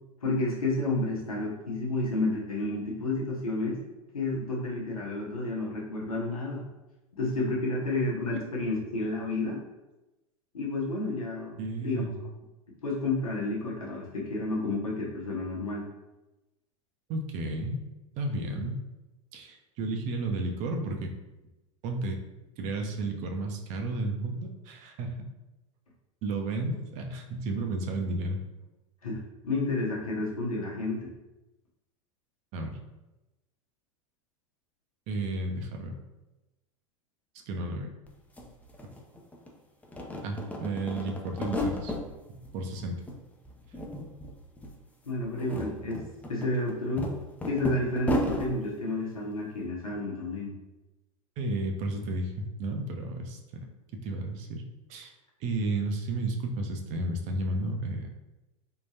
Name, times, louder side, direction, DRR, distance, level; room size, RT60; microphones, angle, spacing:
voice 1, 0.2-3.8 4.1-6.6 7.2-9.6 10.5-12.0 12.8-15.9 29.0-31.1 45.0-47.1 47.4-50.5, left 2 dB, 85° left, -3 dB, 0.9 m, -31 dB
voice 2, 11.6-12.2 17.1-17.8 18.2-18.8 19.3-21.1 21.8-22.2 22.6-25.1 26.2-28.4 32.5-32.8 35.1-35.9 37.5-37.9 40.2-41.9 42.3-43.0 51.4-53.4 54.0-54.6 54.9-55.1 55.4-58.1, right 2 dB, 45° right, 3 dB, 0.6 m, -32 dB
sound 1, 38.1-38.2 38.4-39.5 39.8-42.0 42.4-43.2 43.4-44.3 44.6-44.7 45.2-48.5, left 1 dB, 10° left, 0.5 m, -33 dB
3.6 x 2.4 x 2.8 m, 1.0 s
hypercardioid pair, 90°, 18 cm